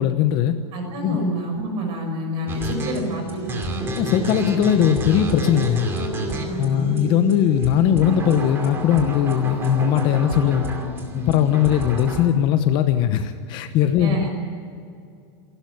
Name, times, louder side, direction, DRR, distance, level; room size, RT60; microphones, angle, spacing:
voice 1, 0.0-0.6 1.0-1.2 3.9-5.9 6.6-10.7 11.1-14.3, left 10 dB, 30° left, 9 dB, 0.9 m, -19 dB
voice 2, 0.7-3.6 6.4-6.9 14.0-14.3, equal, 35° right, 2 dB, 5.9 m, -28 dB
sound 1, 2.5-12.3, right 1 dB, 15° right, 2.5 m, -29 dB
27.0 x 12.5 x 9.5 m, 2.4 s
supercardioid pair, 170°, 14 cm